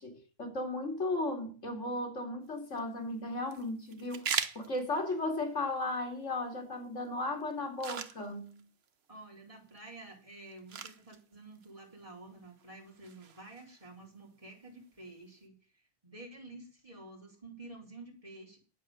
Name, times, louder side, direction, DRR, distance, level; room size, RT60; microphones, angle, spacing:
voice 1, 0.0-8.6, left 2 dB, 75° left, 3.2 m, -35 dB
sound 1, 2.4-15.4, right 6 dB, 60° right, 1.2 m, -44 dB
voice 2, 9.1-15.6 16.0-18.6, right 2 dB, 25° right, 4.0 m, -50 dB
10.5 x 8.4 x 6.5 m
omnidirectional pair, 1.3 m